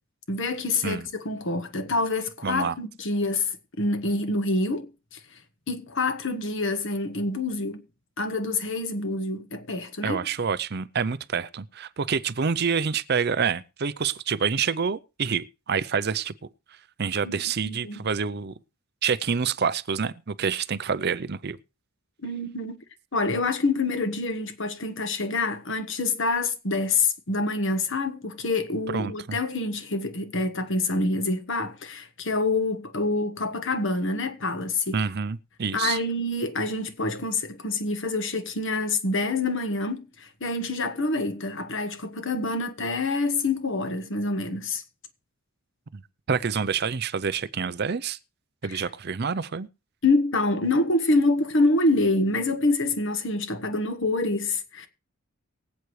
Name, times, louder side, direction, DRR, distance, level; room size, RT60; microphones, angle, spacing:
voice 1, 0.3-5.2 5.7-7.8 8.2-10.2 17.2-18.0 22.2-22.8 23.1-35.0 35.7-44.8 48.7-48.8 50.0-54.9, left 2 dB, 60° left, 1.4 m, -26 dB
voice 2, 2.4-2.8 10.0-16.3 17.0-18.5 19.0-21.6 28.9-29.4 34.9-36.0 45.9-46.0 46.3-48.2 48.6-49.7, right 6 dB, 45° right, 0.5 m, -27 dB
23.5 x 8.2 x 3.2 m
head